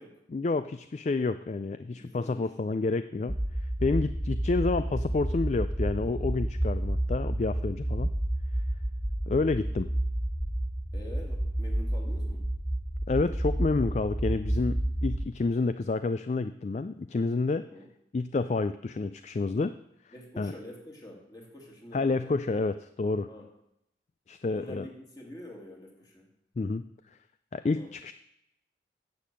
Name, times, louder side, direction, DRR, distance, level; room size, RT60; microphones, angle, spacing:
voice 1, 0.3-3.3 3.8-8.1 9.3-9.9 13.1-17.6 18.1-19.7 20.4-20.5 21.9-23.3 24.3-24.8 26.6-26.8 27.5-28.1, left 3 dB, 40° left, 12 dB, 0.3 m, -29 dB
voice 2, 1.9-2.4 10.9-12.5 17.6-17.9 20.1-22.4 23.3-23.5 24.5-26.3 27.7-27.9, left 1 dB, 20° left, -1 dB, 2.7 m, -46 dB
sound 1, 3.3-15.3, right 1 dB, 5° left, 2.1 m, -30 dB
10.5 x 7.5 x 7.6 m, 0.79 s
head